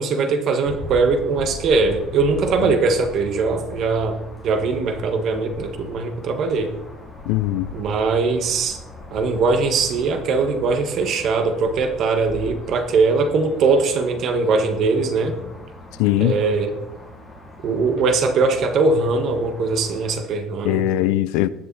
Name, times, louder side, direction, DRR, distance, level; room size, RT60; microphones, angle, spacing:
voice 1, 0.0-4.2 4.4-6.7 7.7-8.8 9.1-15.4 16.2-16.7 17.6-20.8, right 4 dB, 45° right, 1.4 m, -21 dB
sound 1, 0.6-20.2, left 1 dB, 5° left, 3.1 m, -39 dB
voice 2, 7.2-7.7 16.0-16.4 20.6-21.5, left 14 dB, 90° left, 0.6 m, -20 dB
20.0 x 6.7 x 4.1 m
cardioid pair, 165°, 0 cm